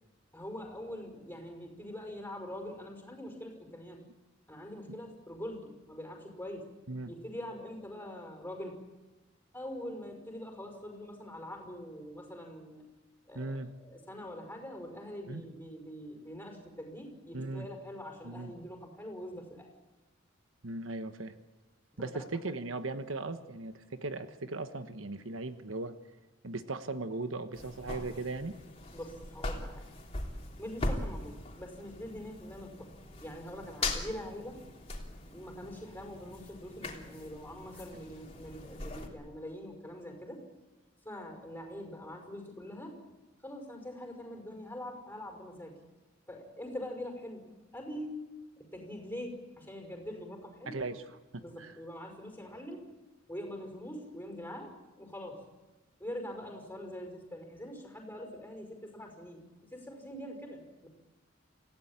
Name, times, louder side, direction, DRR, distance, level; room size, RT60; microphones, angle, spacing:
voice 1, 0.3-4.0 4.5-6.7 7.1-8.8 9.5-12.8 13.3-19.7 22.1-22.3 28.9-29.9 30.6-32.9 33.2-34.6 35.3-40.5 41.0-43.0 43.4-45.8 46.3-47.5 47.7-48.2 48.6-50.9 51.4-52.8 53.3-55.5 56.0-59.4 59.7-60.9, left 1 dB, 10° left, 2 dB, 5.4 m, -43 dB
voice 2, 13.3-13.7 15.3-15.4 17.3-17.7 18.2-18.5 20.6-21.3 22.0-25.9 26.4-28.6 50.7-51.0 51.3-51.7, right 2 dB, 80° right, 9 dB, 1.2 m, -38 dB
sound 1, 27.5-39.1, left 2 dB, 30° left, 3.3 m, -40 dB
27.5 x 16.5 x 8.9 m, 1.1 s
head